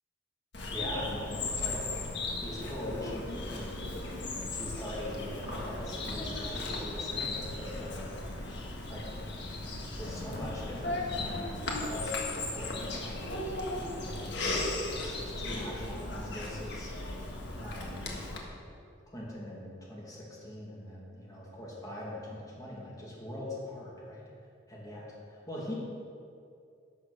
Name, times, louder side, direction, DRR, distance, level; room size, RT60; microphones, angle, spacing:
Bird vocalization bird call bird song, 0.5-18.4, left 2 dB, 60° left, 1.5 m, -36 dB
voice 1, 0.7-1.8 2.4-3.9 4.5-8.0 8.9-9.0 10.0-16.9 17.6-18.2 19.1-24.2 24.7-25.0 25.3-25.7, left 1 dB, 20° left, -5 dB, 2.4 m, -42 dB
11.0 x 6.4 x 6.5 m, 2.4 s
head